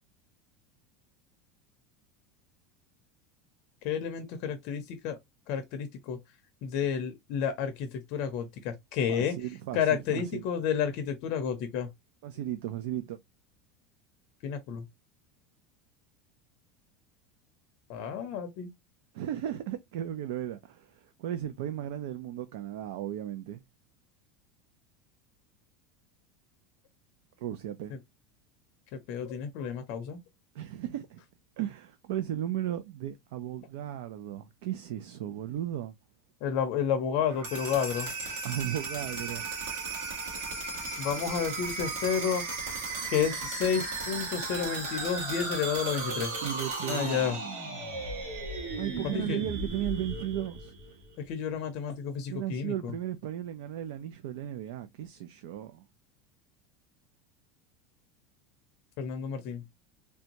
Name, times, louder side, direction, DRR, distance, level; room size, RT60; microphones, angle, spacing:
voice 1, 3.8-5.2 5.5-6.2 6.6-9.3 9.7-11.9 14.4-14.8 17.9-18.7 27.9-28.0 28.9-30.2 36.4-38.1 41.0-42.4 43.1-46.3 46.9-47.4 49.0-49.4 51.2-52.9 59.0-59.6, left 7 dB, 50° left, 0.6 m, -31 dB
voice 2, 9.1-9.8 10.1-10.4 12.2-13.2 19.1-23.6 27.4-28.0 30.5-31.2 31.6-35.9 38.4-39.4 46.4-47.4 48.8-50.7 52.3-55.8, right 11 dB, 65° right, 0.4 m, -35 dB
sound 1, 37.3-51.1, right 3 dB, 85° right, 1.7 m, -35 dB
3.4 x 2.6 x 2.8 m
supercardioid pair, 175°, 0 cm